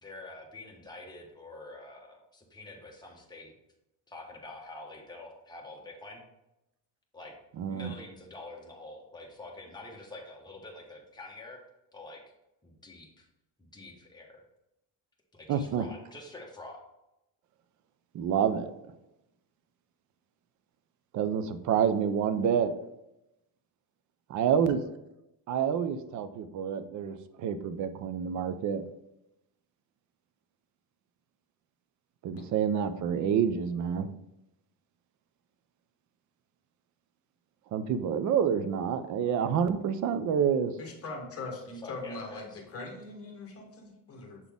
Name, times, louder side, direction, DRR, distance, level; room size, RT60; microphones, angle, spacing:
voice 1, 0.0-3.5 4.1-6.2 7.1-7.3 7.6-11.6 11.9-12.2 12.6-13.3 13.6-14.4 15.3-16.8 41.8-42.6, left 2 dB, 10° left, -1 dB, 1.0 m, -46 dB
voice 2, 7.6-7.9 15.5-15.9 18.1-18.7 21.1-22.7 24.3-24.8 25.5-28.8 32.2-34.1 37.7-40.7, right 8 dB, 45° right, 10 dB, 0.5 m, -28 dB
voice 3, 40.8-44.4, left 3 dB, 35° left, 2 dB, 1.1 m, -41 dB
7.2 x 4.0 x 3.5 m, 0.89 s
cardioid pair, 165°, 43 cm